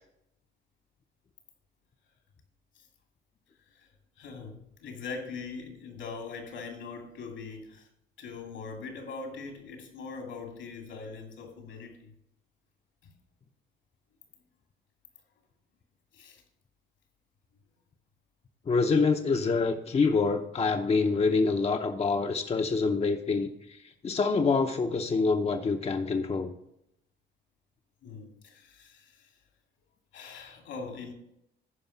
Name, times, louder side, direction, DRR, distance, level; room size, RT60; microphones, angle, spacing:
voice 1, 3.7-7.9 8.2-12.1 13.0-13.1 16.1-16.4 28.0-29.3 30.1-31.1, left 4 dB, 80° left, 2 dB, 2.5 m, -42 dB
voice 2, 18.7-26.5, left 4 dB, 30° left, 5 dB, 0.7 m, -26 dB
11.0 x 4.8 x 5.9 m, 0.79 s
cardioid pair, 90°, 20 cm